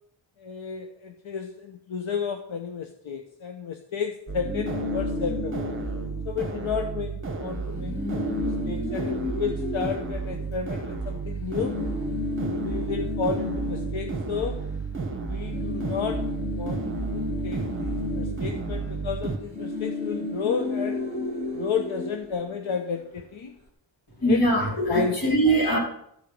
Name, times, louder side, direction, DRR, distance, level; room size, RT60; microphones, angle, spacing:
voice 1, 0.4-5.7 6.2-11.8 12.4-14.6 15.3-16.2 16.5-21.0 21.5-23.6 24.2-24.4 24.9-25.4, left 6 dB, 80° left, 5 dB, 1.0 m, -32 dB
sound 1, 4.3-6.9 7.2-7.3 7.6-11.0 11.5-15.1 15.3-23.0, left 2 dB, 20° left, 3.0 m, -33 dB
sound 2, 4.3-19.4, right 4 dB, 25° right, 1.6 m, -32 dB
voice 2, 24.2-25.8, right 1 dB, 45° left, -3 dB, 4.3 m, -22 dB
14.0 x 7.9 x 5.4 m, 0.72 s
wide cardioid pair, 160°, 47 cm